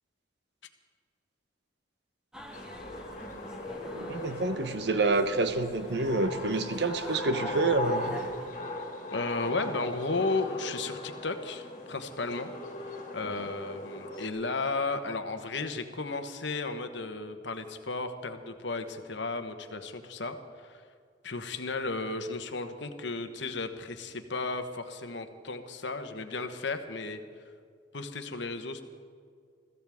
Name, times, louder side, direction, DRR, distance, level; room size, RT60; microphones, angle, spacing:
sound 1, 2.3-8.5, equal, 5° right, 1.0 m, -46 dB
sound 2, 2.5-14.3, left 1 dB, 40° left, 2.0 m, -39 dB
voice 1, 3.9-8.2, right 3 dB, 60° right, 9 dB, 1.0 m, -28 dB
voice 2, 9.1-12.5 13.1-20.8 21.2-27.2 27.9-28.8, left 3 dB, 65° left, 7 dB, 1.1 m, -34 dB
21.5 x 15.0 x 3.6 m, 2.2 s
head